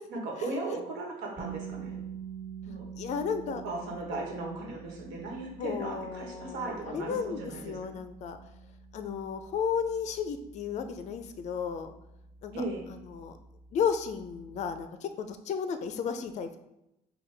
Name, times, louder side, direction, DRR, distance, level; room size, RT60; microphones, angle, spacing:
voice 1, 0.1-2.0 2.6-2.8 3.5-7.8 12.5-12.9, right 2 dB, 90° right, -1 dB, 1.2 m, -37 dB
sound 1, 1.4-13.2, right 7 dB, 55° right, 1.5 m, -46 dB
voice 2, 3.0-3.6 5.6-8.4 8.9-11.9 12.4-12.5 12.9-13.4 13.7-16.6, left 6 dB, 45° left, 8 dB, 0.4 m, -33 dB
5.5 x 2.3 x 3.3 m, 0.86 s
cardioid pair, 110°, 17 cm